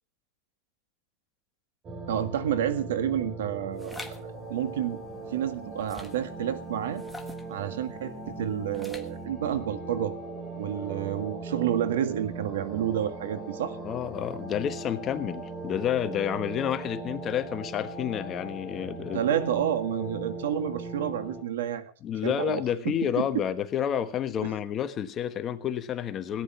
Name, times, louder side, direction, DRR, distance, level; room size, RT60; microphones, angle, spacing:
sound 1, 1.8-21.4, right 2 dB, 25° right, 3.6 m, -39 dB
voice 1, 2.1-4.0 4.5-5.0 5.3-7.0 7.5-10.1 10.6-13.8 19.1-21.8 22.2-23.3 24.4-24.5, right 10 dB, 90° right, 10 dB, 1.8 m, -29 dB
sound 2, 3.8-4.2 5.8-6.3 7.0-7.5 8.7-9.2, left 2 dB, 5° left, 1.3 m, -43 dB
voice 2, 13.8-19.3 22.0-26.4, left 9 dB, 25° left, 9 dB, 1.2 m, -30 dB
18.0 x 10.0 x 5.8 m, 0.41 s
supercardioid pair, 150°, 0 cm